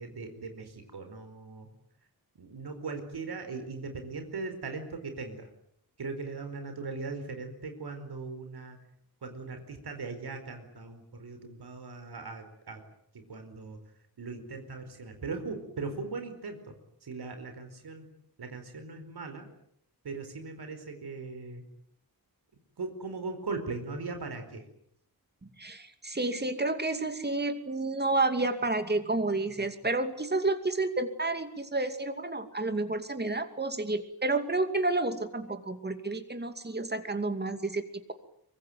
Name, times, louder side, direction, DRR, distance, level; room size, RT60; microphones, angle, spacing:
voice 1, 0.0-1.7 2.4-5.5 6.0-8.8 9.2-12.8 13.1-13.8 14.2-16.7 17.0-18.1 18.4-19.5 20.0-21.6 22.8-24.6, right 4 dB, 80° right, 7 dB, 4.7 m, -39 dB
voice 2, 25.6-38.1, right 2 dB, 25° right, 8 dB, 2.6 m, -30 dB
24.5 x 23.5 x 9.3 m, 0.70 s
wide cardioid pair, 140°, 38 cm